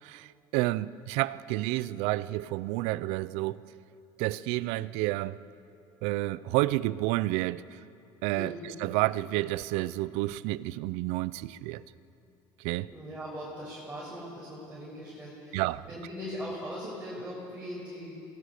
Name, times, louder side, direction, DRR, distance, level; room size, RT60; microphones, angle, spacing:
voice 1, 0.0-3.6 4.2-5.4 6.0-7.8 8.2-11.8 12.6-12.9 15.5-15.9, right 17 dB, 75° right, 0.6 m, -30 dB
voice 2, 8.3-8.7 12.9-18.2, equal, 10° right, 6.8 m, -40 dB
27.0 x 19.5 x 6.7 m
cardioid pair, 125°, 11 cm